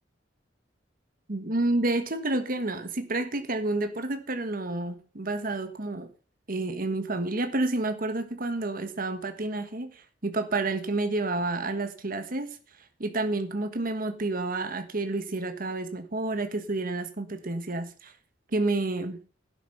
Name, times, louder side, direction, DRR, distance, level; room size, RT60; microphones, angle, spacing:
voice 1, 1.3-6.1 6.5-12.6 13.0-18.1 18.5-19.2, right 2 dB, 50° right, 8 dB, 1.4 m, -29 dB
11.5 x 9.9 x 5.7 m, 0.37 s
head